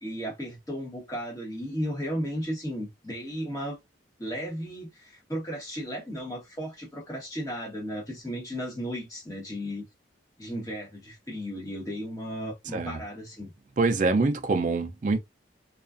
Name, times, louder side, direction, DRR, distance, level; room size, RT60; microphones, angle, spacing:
voice 1, 0.0-3.8 4.2-9.8 10.4-13.5, equal, 20° left, 1.0 m, -35 dB
voice 2, 13.8-15.2, right 3 dB, 40° right, 0.4 m, -25 dB
2.4 x 2.3 x 2.4 m
head